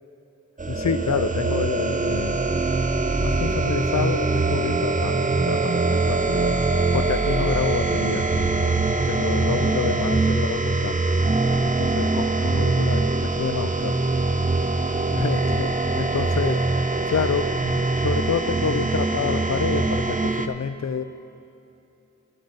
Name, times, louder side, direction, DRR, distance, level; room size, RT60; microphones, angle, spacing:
sound 1, 0.6-20.5, right 3 dB, 25° right, 0.5 m, -23 dB
voice 1, 0.7-2.9 3.1-6.6 6.9-8.8 9.0-11.0 11.6-13.9 15.1-16.6 17.1-21.0, left 6 dB, 65° left, 12 dB, 0.5 m, -28 dB
13.5 x 8.5 x 4.0 m, 2.8 s
wide cardioid pair, 45°, 30 cm